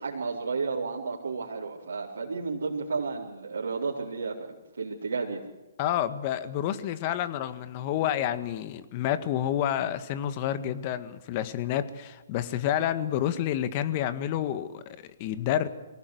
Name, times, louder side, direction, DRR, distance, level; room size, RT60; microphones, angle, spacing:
voice 1, 0.0-4.4 4.8-5.4, right 4 dB, 80° right, -6 dB, 4.2 m, -32 dB
voice 2, 5.8-15.7, left 11 dB, 40° left, 12 dB, 1.8 m, -29 dB
23.5 x 18.5 x 8.1 m, 1.1 s
hypercardioid pair, 135°, 0 cm